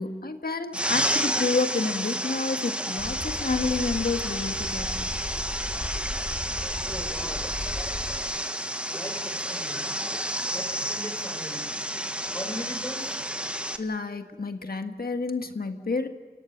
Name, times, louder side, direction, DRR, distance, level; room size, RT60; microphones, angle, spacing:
voice 1, 0.0-5.1 13.8-16.1, left 3 dB, 70° left, 6 dB, 1.7 m, -29 dB
sound 1, 0.7-13.8, equal, 5° right, 1.6 m, -30 dB
sound 2, 3.0-8.2, left 2 dB, 45° left, 2.3 m, -36 dB
voice 2, 6.9-7.5 8.9-9.9 10.5-11.7 12.3-13.2, left 1 dB, 20° left, 2 dB, 6.2 m, -38 dB
27.5 x 17.5 x 7.4 m, 1.5 s
wide cardioid pair, 65°, 16 cm